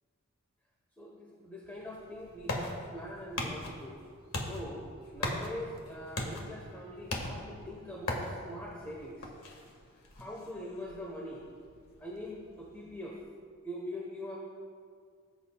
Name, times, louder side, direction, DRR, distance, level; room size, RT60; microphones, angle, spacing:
voice 1, 1.0-4.0 4.4-9.3 10.2-11.5 12.0-13.2 13.6-14.4, left 1 dB, 10° left, -2 dB, 1.0 m, -43 dB
sound 1, 1.7-13.2, left 2 dB, 80° left, 1.6 m, -41 dB
18.5 x 8.4 x 2.3 m, 2.1 s
head